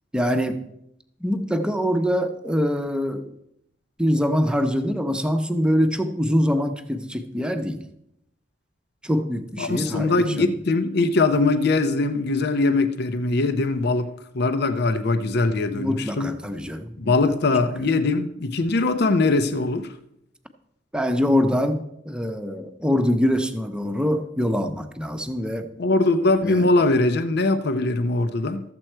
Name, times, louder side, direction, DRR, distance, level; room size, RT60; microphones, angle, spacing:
voice 1, 0.1-0.6 1.2-3.3 4.0-7.8 9.0-10.5 15.7-17.1 17.8-17.9 20.9-25.7 26.4-26.7, equal, 5° right, 6 dB, 0.8 m, -24 dB
voice 2, 9.6-16.3 17.0-19.9 25.8-28.6, left 3 dB, 60° left, 9 dB, 0.7 m, -21 dB
13.5 x 7.6 x 4.5 m, 0.79 s
head